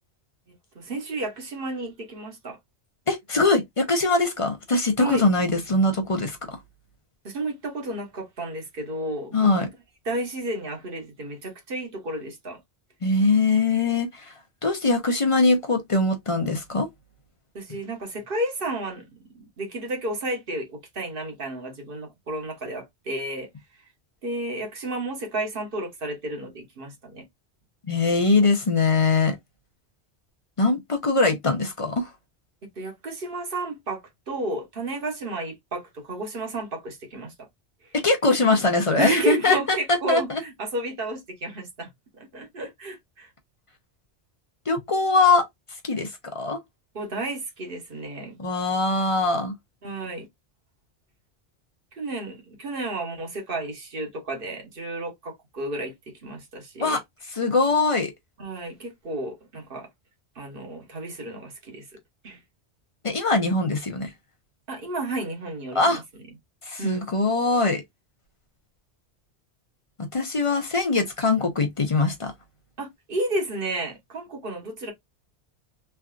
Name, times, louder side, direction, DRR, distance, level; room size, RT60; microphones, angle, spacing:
voice 1, 0.7-2.6 5.0-5.2 7.2-9.5 10.0-12.6 17.5-19.0 19.3-23.5 24.2-27.2 32.8-34.0 34.3-37.5 39.0-41.9 42.2-43.3 46.9-48.4 49.8-50.3 51.9-57.0 58.4-59.9 60.4-61.9 62.2-62.4 64.7-66.0 66.8-67.1 72.8-74.9, right 1 dB, 55° right, 1.2 m, -32 dB
voice 2, 3.1-6.6 9.3-9.7 13.0-14.3 14.6-16.9 27.9-29.3 30.6-32.1 38.0-40.4 44.7-45.5 45.8-46.6 48.4-49.5 56.8-57.0 57.3-58.1 63.0-64.1 65.7-66.0 66.6-67.8 70.0-72.3, left 3 dB, 35° left, 0.6 m, -22 dB
3.3 x 2.6 x 2.3 m
omnidirectional pair, 1.1 m